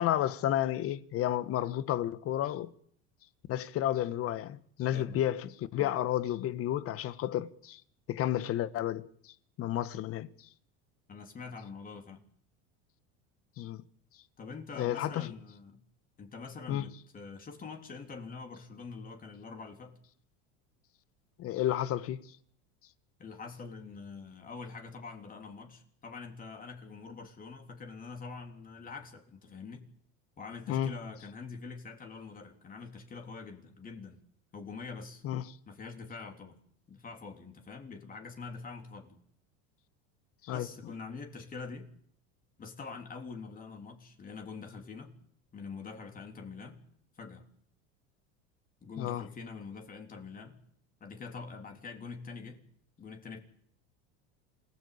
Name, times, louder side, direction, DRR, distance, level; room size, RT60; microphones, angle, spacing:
voice 1, 0.0-2.7 3.5-7.8 8.1-10.3 13.6-13.8 14.8-15.3 16.7-16.8 21.4-22.3 30.7-30.9 35.2-35.4 40.4-40.7 49.0-49.2, left 12 dB, 45° left, 1.4 m, -31 dB
voice 2, 11.1-12.2 14.4-15.8 16.2-20.0 23.2-29.8 30.4-34.2 34.5-35.2 35.7-36.6 36.9-39.2 40.5-41.9 42.6-45.2 45.5-46.8 47.2-47.5 48.8-50.6 51.0-52.6 53.0-53.4, left 4 dB, 25° left, 3.7 m, -45 dB
27.0 x 17.0 x 8.7 m
supercardioid pair, 120°, 33 cm